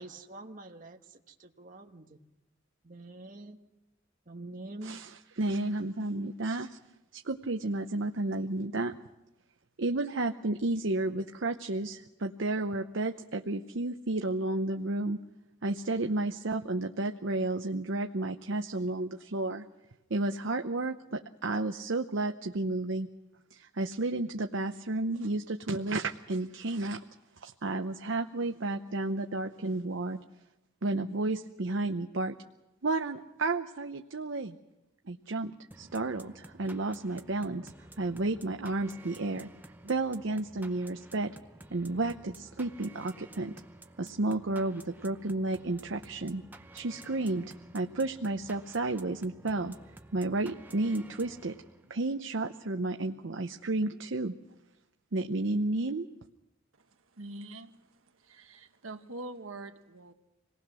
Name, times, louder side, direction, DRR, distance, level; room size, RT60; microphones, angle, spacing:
voice 1, 0.0-2.2 2.8-3.6 4.3-5.0, right 2 dB, 40° right, 3 dB, 1.3 m, -46 dB
voice 2, 4.8-6.8 7.1-8.9 9.8-15.2 15.6-19.6 20.1-23.1 23.5-27.0 27.4-30.2 30.8-32.3 32.8-34.6 35.1-37.7 38.0-39.5 39.8-41.3 41.7-43.5 44.0-46.4 46.7-49.7 50.1-51.5 51.9-54.3 55.1-56.1, right 2 dB, 65° right, 6 dB, 0.8 m, -32 dB
sound 1, 35.7-52.0, right 1 dB, 10° right, 0.7 m, -52 dB
voice 3, 56.8-60.1, right 2 dB, 85° right, 6 dB, 1.5 m, -45 dB
26.5 x 19.0 x 6.2 m, 0.96 s
head